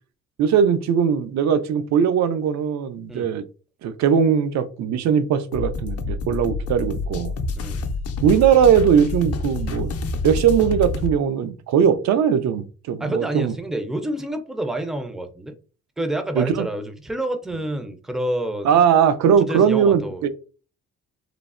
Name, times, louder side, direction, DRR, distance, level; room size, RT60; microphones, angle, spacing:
voice 1, 0.4-3.4 3.8-7.3 8.2-9.9 10.2-13.5 16.4-16.7 18.6-20.3, right 8 dB, 65° right, 0.4 m, -19 dB
sound 1, 5.5-11.1, left 3 dB, 55° left, 0.5 m, -28 dB
voice 2, 7.5-7.9 13.0-15.5 16.0-18.7 19.5-20.2, right 1 dB, ahead, 0.4 m, -28 dB
3.1 x 2.0 x 2.4 m
cardioid pair, 90°, 30 cm